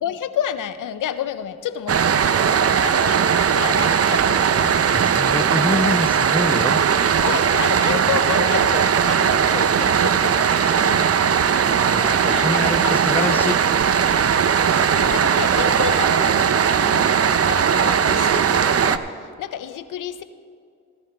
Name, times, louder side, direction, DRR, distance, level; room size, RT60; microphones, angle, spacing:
voice 1, 0.0-4.9 7.1-10.5 10.8-11.1 11.8-13.5 14.9-20.2, left 10 dB, 80° left, 12 dB, 0.6 m, -30 dB
sound 1, 1.9-19.0, right 7 dB, 50° right, 0.6 m, -18 dB
voice 2, 4.9-6.8 11.9-13.6, left 2 dB, 5° left, 13 dB, 0.4 m, -26 dB
16.0 x 11.5 x 3.4 m, 2.3 s
cardioid pair, 45°, 31 cm